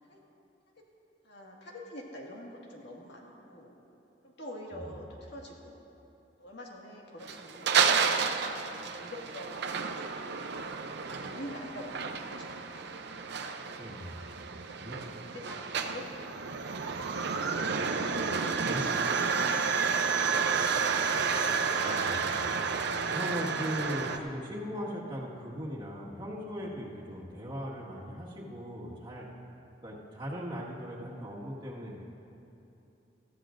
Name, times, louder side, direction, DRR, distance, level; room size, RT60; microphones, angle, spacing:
voice 1, 1.2-3.7 4.2-5.8 6.4-8.1 8.7-10.1 11.3-13.1 14.5-17.1 17.6-20.0 27.1-27.2, left 1 dB, 65° left, -2 dB, 1.9 m, -46 dB
sound 1, 7.2-24.2, right 5 dB, 65° right, 0.6 m, -31 dB
voice 2, 13.8-14.3 14.8-15.0 18.1-18.3 18.6-18.8 21.8-22.4 22.8-29.3 29.8-32.0, equal, 25° right, -5 dB, 1.8 m, -39 dB
19.0 x 14.0 x 2.6 m, 2.9 s
head